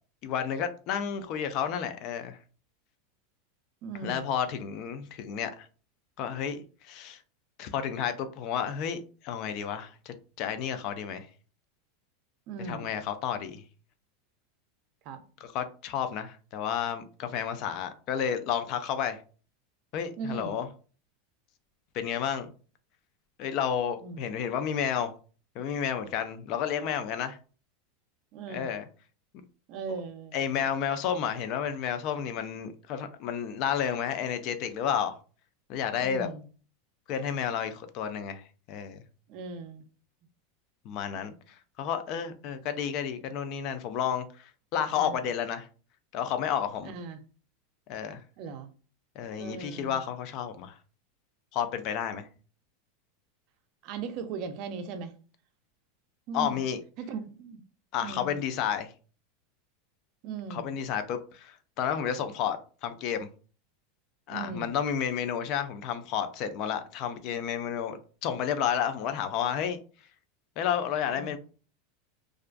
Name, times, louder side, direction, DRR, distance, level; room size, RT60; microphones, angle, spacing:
voice 1, 0.2-2.4 4.0-5.7 6.2-7.2 7.6-11.3 12.6-13.6 15.4-19.2 19.9-20.7 21.9-22.5 23.4-25.1 25.6-27.4 28.5-28.9 30.3-35.1 35.7-36.3 37.1-38.4 38.7-39.0 40.9-41.3 41.8-45.7 46.1-46.9 47.9-48.2 49.2-50.7 51.5-52.3 56.3-56.8 57.9-58.9 60.5-62.6 62.8-63.3 64.3-69.8 70.6-71.4, left 8 dB, 50° left, 0.4 m, -31 dB
voice 2, 3.8-4.3 12.5-12.9 15.1-15.2 20.2-20.6 24.0-24.2 28.3-28.7 29.7-30.4 35.9-36.5 39.3-39.8 44.9-45.2 46.8-47.2 48.4-48.7 49.4-50.0 53.8-55.1 56.3-56.6 57.0-57.6 58.0-58.4 60.2-60.7 64.3-64.8 71.1-71.4, right 5 dB, 50° right, 0.4 m, -38 dB
2.3 x 2.2 x 2.4 m
supercardioid pair, 125°, 0 cm